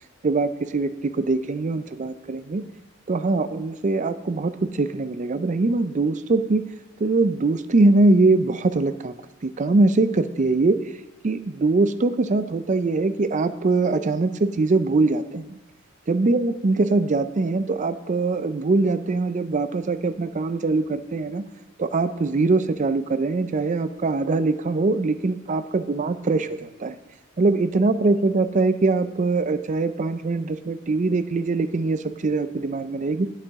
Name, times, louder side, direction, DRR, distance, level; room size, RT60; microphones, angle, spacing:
voice 1, 0.2-2.6 3.1-6.6 7.0-9.2 9.4-10.8 11.2-15.6 16.1-21.4 21.8-27.0 27.4-33.3, right 3 dB, 40° right, 11 dB, 0.5 m, -22 dB
11.0 x 8.2 x 3.6 m, 1.0 s
head